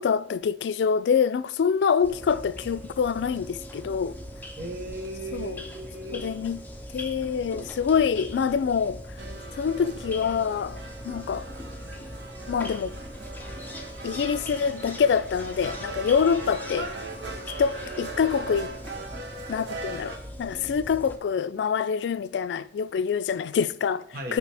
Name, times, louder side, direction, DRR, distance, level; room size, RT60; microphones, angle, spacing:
voice 1, 0.0-4.1 5.3-5.6 6.1-6.6 6.9-9.0 9.6-10.8 11.0-11.4 12.5-13.0 14.0-16.9 17.6-18.7 19.5-24.0 24.3-24.4, left 6 dB, 75° left, 0.3 m, -25 dB
sound 1, 2.0-21.2, equal, 10° left, 0.5 m, -41 dB
voice 2, 4.6-6.3 24.1-24.4, right 1 dB, 60° right, 1.1 m, -37 dB
sound 2, 9.2-20.2, right 2 dB, 85° right, 1.0 m, -39 dB
9.3 x 4.9 x 3.4 m
head